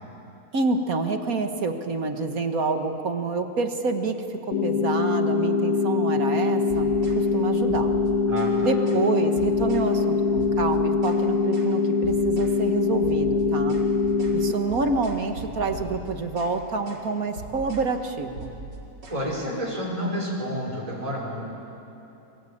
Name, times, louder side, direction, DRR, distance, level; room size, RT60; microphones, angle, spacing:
voice 1, 0.5-7.9 8.6-13.8 14.3-18.5, right 3 dB, 55° right, 6 dB, 1.9 m, -28 dB
sound 1, 4.5-14.5, left 4 dB, 65° left, 1.6 m, -23 dB
sound 2, 6.7-7.2 7.7-8.6 8.9-9.1 9.4-9.9 10.4-11.2 11.5-11.7 12.0-12.6 13.0-16.6 16.9-17.1 17.4-17.9 18.4-19.2, right 2 dB, 75° right, 4.0 m, -40 dB
voice 2, 8.3-8.7 19.1-21.4, equal, 20° right, -4 dB, 5.1 m, -30 dB
28.0 x 23.0 x 8.7 m, 2.9 s
omnidirectional pair, 1.9 m